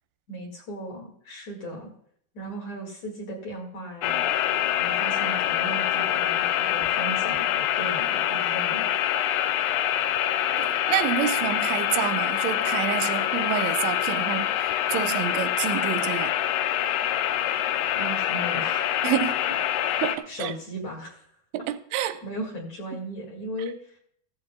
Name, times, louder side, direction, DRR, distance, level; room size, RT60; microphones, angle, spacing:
voice 1, 0.3-1.9 2.3-4.3 4.8-8.9 18.0-19.0 19.8-21.3 21.9-24.0, right 1 dB, 50° left, 2.7 m, -37 dB
sound 1, 4.0-20.2, left 11 dB, 85° left, 2.4 m, -25 dB
voice 2, 10.6-16.3 19.0-19.4 20.0-20.5 21.5-22.2, right 11 dB, 90° right, 3.1 m, -28 dB
15.5 x 14.0 x 2.2 m
omnidirectional pair, 5.2 m